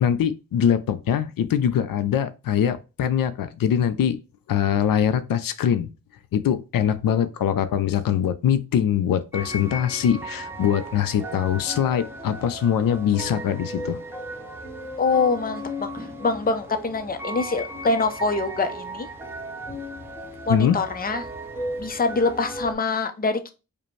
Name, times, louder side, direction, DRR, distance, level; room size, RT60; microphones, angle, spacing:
voice 1, 0.0-4.2 4.5-5.9 6.3-14.0 20.5-20.8, left 9 dB, 85° left, 0.5 m, -23 dB
sound 1, 9.3-22.7, equal, 5° right, 0.9 m, -36 dB
voice 2, 15.0-19.1 20.5-21.2 21.8-23.5, left 4 dB, 25° left, 0.6 m, -24 dB
4.9 x 2.2 x 3.1 m
wide cardioid pair, 135°, 33 cm